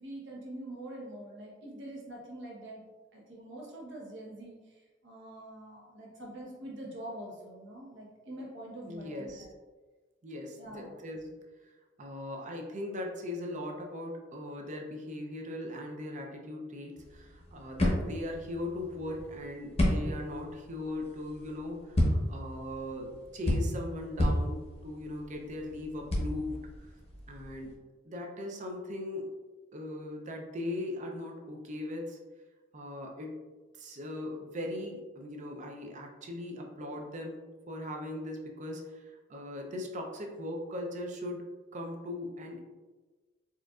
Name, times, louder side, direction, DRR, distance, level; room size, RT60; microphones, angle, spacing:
voice 1, 0.0-2.8 3.1-4.6 5.0-9.3 10.5-11.0, right 1 dB, 65° right, -3 dB, 0.9 m, -44 dB
voice 2, 8.9-9.5 10.2-11.4 11.6-11.7 12.0-26.9 27.3-27.7 28.0-29.3 29.7-32.2 32.7-33.3 33.7-42.6, left 1 dB, 40° right, 1 dB, 0.5 m, -39 dB
sound 1, 17.0-27.7, left 1 dB, 30° left, 0.8 m, -32 dB
4.4 x 2.4 x 2.3 m, 1.3 s
head